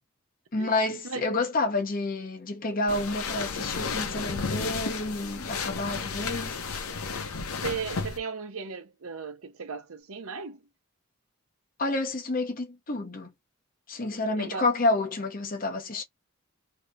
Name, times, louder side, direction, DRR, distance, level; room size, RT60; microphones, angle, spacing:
voice 1, 0.5-6.6 11.8-13.3 13.9-16.0, left 2 dB, 40° left, 0.9 m, -29 dB
voice 2, 1.0-1.4 7.6-10.7 14.4-14.7, right 5 dB, 80° right, 0.7 m, -36 dB
sound 1, 2.9-8.2, left 5 dB, 90° left, 0.8 m, -33 dB
3.2 x 2.9 x 2.4 m
head